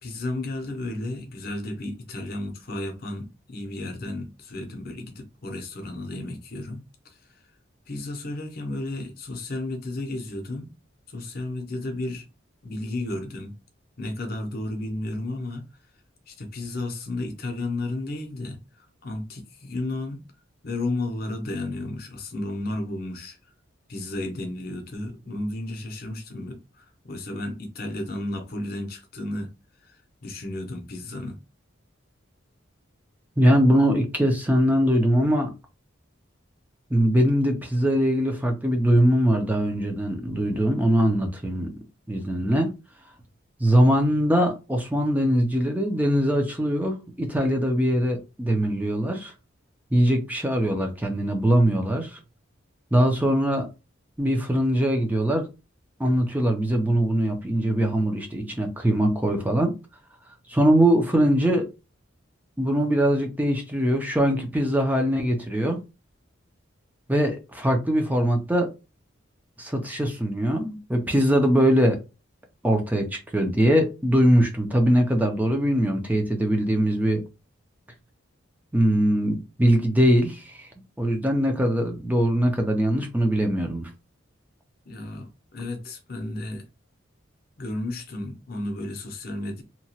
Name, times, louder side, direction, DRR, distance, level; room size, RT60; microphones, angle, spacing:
voice 1, 0.0-6.8 7.9-10.7 11.1-12.3 12.6-13.5 14.0-15.7 16.3-20.2 20.6-23.4 23.9-29.5 29.8-30.0 30.2-31.4 84.9-86.6 87.6-89.6, left 2 dB, 50° left, 0.7 m, -33 dB
voice 2, 33.4-35.5 36.9-41.7 42.1-42.7 43.6-49.3 49.9-52.2 52.9-53.7 54.2-55.5 56.0-59.7 60.5-61.7 62.6-65.8 67.1-68.7 69.6-72.0 72.6-77.2 78.7-80.7 81.0-83.9, equal, 10° right, 0.5 m, -22 dB
2.9 x 2.3 x 2.8 m
head